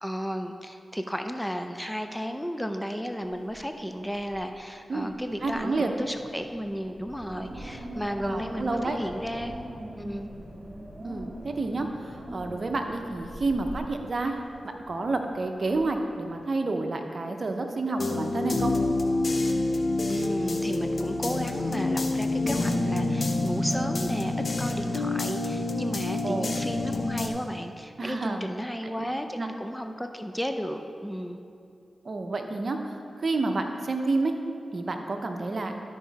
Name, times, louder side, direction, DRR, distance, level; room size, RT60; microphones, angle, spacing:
voice 1, 0.0-9.5 10.0-10.3 20.1-31.4, equal, 5° left, 6 dB, 0.6 m, -34 dB
Wind, 3.2-3.7 4.0-4.5 5.0-16.4, equal, 30° right, 1.6 m, -43 dB
voice 2, 5.4-5.9 8.2-9.0 11.0-14.4 14.9-18.7 26.2-26.6 28.0-28.4 28.8-28.9 29.4-29.5 32.0-34.3 34.7-35.7, right 3 dB, 60° right, 5 dB, 0.7 m, -29 dB
sound 1, 18.0-27.3, left 2 dB, 60° left, 0.7 m, -27 dB
12.0 x 4.9 x 4.1 m, 2.5 s
cardioid pair, 40°, 0 cm